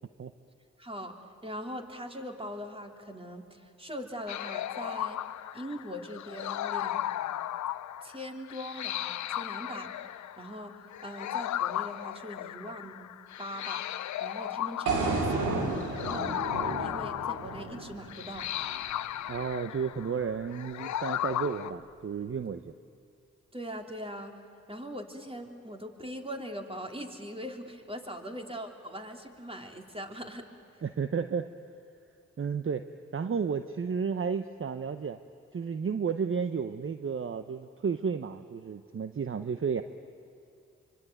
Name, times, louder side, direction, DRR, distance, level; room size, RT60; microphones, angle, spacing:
voice 1, 0.8-1.1 1.4-5.2 5.5-7.4 8.0-9.9 10.4-10.8 11.0-13.1 13.4-13.9 14.2-15.8 16.0-18.5 23.5-24.3 24.7-30.5, equal, 20° right, 3 dB, 3.3 m, -41 dB
sound 1, 4.3-21.7, left 12 dB, 80° left, 0.6 m, -36 dB
sound 2, 14.9-19.0, right 3 dB, 90° right, 2.7 m, -32 dB
voice 2, 19.3-22.7 30.8-31.5 32.4-32.8 33.1-35.2 35.5-39.8, right 6 dB, 45° right, 10 dB, 0.9 m, -32 dB
24.5 x 24.5 x 9.3 m, 2.4 s
supercardioid pair, 45°, 29 cm